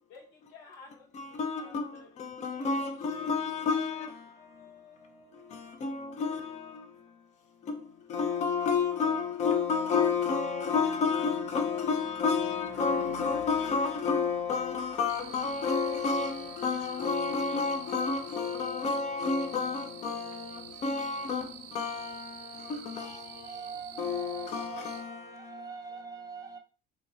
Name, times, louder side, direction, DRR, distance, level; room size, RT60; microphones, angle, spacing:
voice 1, 0.1-2.2 2.5-3.3 3.7-4.1 4.3-5.9, left 4 dB, 85° left, 1.2 m, -54 dB
voice 2, 1.1-26.1, left 5 dB, 35° left, 0.6 m, -31 dB
Car passing by / Truck / Engine, 9.3-19.3, left 3 dB, 60° left, 0.9 m, -55 dB
sound 1, 15.1-25.0, right 11 dB, 85° right, 0.4 m, -48 dB
voice 3, 22.9-26.6, right 5 dB, 15° right, 0.6 m, -44 dB
2.9 x 2.5 x 4.0 m
cardioid pair, 125°, 21 cm